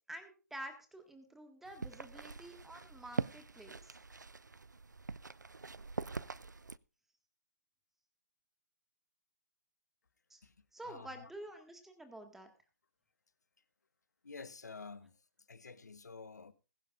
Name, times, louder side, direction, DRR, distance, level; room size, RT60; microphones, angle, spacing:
voice 1, 0.1-4.0 10.3-10.4 10.7-12.5, right 1 dB, 5° right, 1.7 m, -49 dB
sound 1, 1.6-6.8, right 4 dB, 80° right, 0.5 m, -43 dB
voice 2, 10.4-11.3 14.2-15.2 15.5-16.5, left 4 dB, 70° left, 1.1 m, -50 dB
21.5 x 11.0 x 2.5 m
figure-of-eight pair, 130°, 10 cm